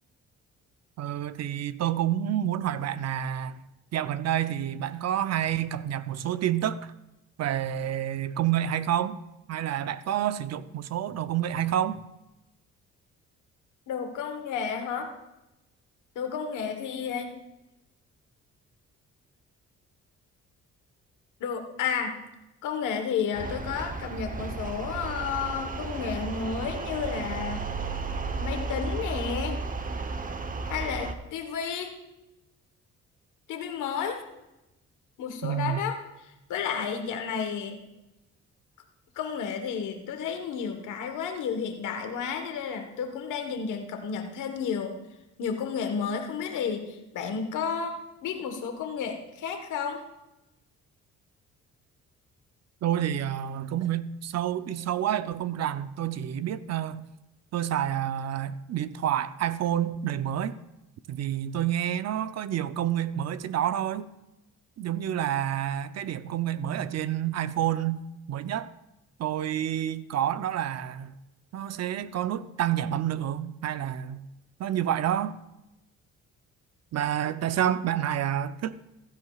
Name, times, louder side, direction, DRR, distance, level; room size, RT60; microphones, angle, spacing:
voice 1, 1.0-3.6 3.9-6.9 7.4-9.2 9.5-12.0 35.4-35.8 52.8-57.0 57.5-60.6 61.1-64.1 64.8-68.0 68.3-68.7 69.2-71.1 71.5-74.3 74.6-75.4 76.9-78.7, right 11 dB, 60° right, 0.6 m, -28 dB
voice 2, 13.9-15.1 16.1-17.3 21.4-22.2 22.6-27.6 28.4-29.6 30.7-32.0 33.5-34.2 35.2-37.8 39.1-45.0 45.4-47.9 48.2-50.0, left 6 dB, 85° left, 1.4 m, -32 dB
sound 1, 23.3-31.1, right 4 dB, 25° right, 0.9 m, -33 dB
16.0 x 12.5 x 2.4 m
cardioid pair, 90°, 30 cm